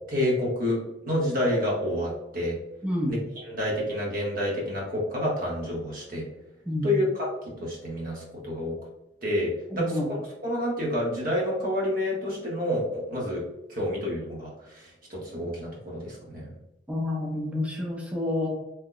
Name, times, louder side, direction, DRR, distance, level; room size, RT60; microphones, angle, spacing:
voice 1, 0.1-2.5 3.1-6.3 6.8-7.3 7.6-8.7 9.2-13.4 13.7-16.5, left 1 dB, 50° right, -3 dB, 1.0 m, -29 dB
voice 2, 2.8-3.1 6.7-6.9 9.7-10.0 16.9-18.5, left 1 dB, 5° right, -2 dB, 0.5 m, -28 dB
2.9 x 2.1 x 3.8 m, 0.89 s
head